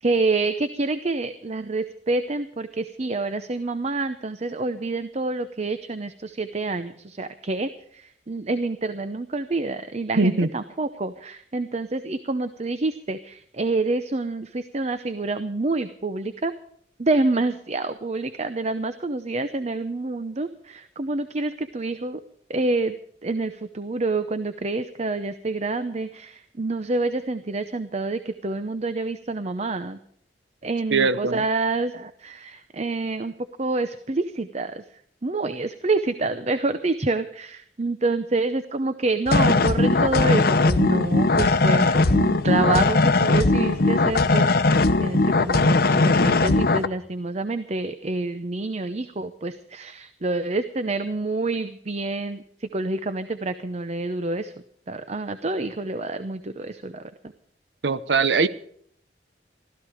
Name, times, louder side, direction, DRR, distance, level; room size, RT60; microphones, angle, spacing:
voice 1, 0.0-16.5 17.0-22.2 22.5-23.0 23.2-30.0 30.6-34.8 35.2-54.5 54.9-57.0, right 3 dB, 40° right, 11 dB, 0.7 m, -27 dB
voice 2, 10.2-10.5 30.9-31.4 57.8-58.5, right 4 dB, 85° right, 13 dB, 1.0 m, -21 dB
sound 1, 39.3-46.9, left 3 dB, 60° left, 0.8 m, -19 dB
16.0 x 13.5 x 4.9 m, 0.65 s
head